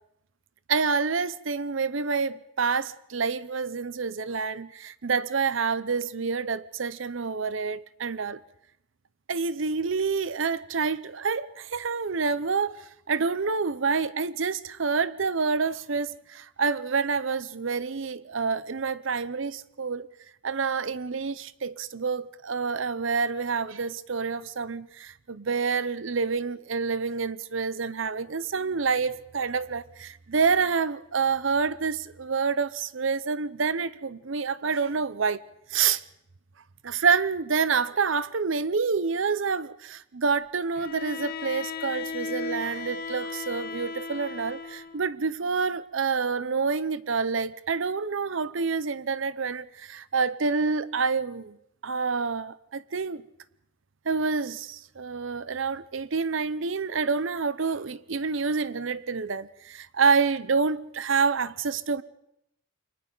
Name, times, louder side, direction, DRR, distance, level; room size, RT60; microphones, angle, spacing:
voice 1, 0.7-8.4 9.3-20.1 20.4-35.4 35.7-36.0 36.8-51.6 51.8-53.2 54.1-62.0, right 5 dB, 65° right, 0.7 m, -28 dB
Bowed string instrument, 40.8-45.1, left 4 dB, 45° left, 1.1 m, -36 dB
29.5 x 23.5 x 4.0 m
head